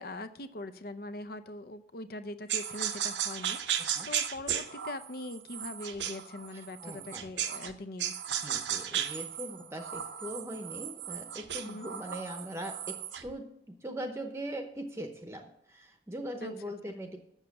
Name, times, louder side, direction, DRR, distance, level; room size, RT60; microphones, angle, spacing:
voice 1, 0.0-3.6 4.0-8.1 11.6-11.9 16.4-16.5 16.9-17.0, left 2 dB, 55° left, 12 dB, 0.6 m, -42 dB
sound 1, 2.5-7.7 8.0-13.3, right 9 dB, 85° right, 0.8 m, -35 dB
voice 2, 6.5-7.3 8.4-17.2, right 1 dB, 15° right, 5 dB, 0.8 m, -41 dB
7.3 x 6.7 x 8.0 m, 0.75 s
head